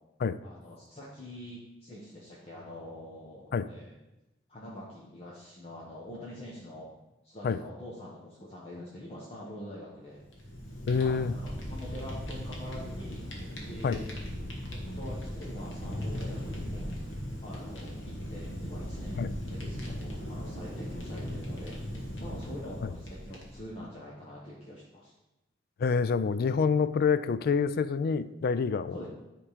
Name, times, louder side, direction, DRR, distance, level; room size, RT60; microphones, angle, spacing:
voice 1, 0.4-3.9 4.5-6.9 7.2-10.3 10.9-13.3 13.6-14.1 14.7-16.9 17.4-21.8 22.2-25.1 28.9-29.1, left 1 dB, 30° left, -6 dB, 1.2 m, -45 dB
Fire, 10.2-23.8, equal, 75° left, 1.5 m, -38 dB
voice 2, 10.9-11.3 13.8-14.0 19.1-19.3 22.8-22.9 25.8-29.1, left 5 dB, 55° left, 14 dB, 0.3 m, -27 dB
9.9 x 3.7 x 4.9 m, 0.96 s
head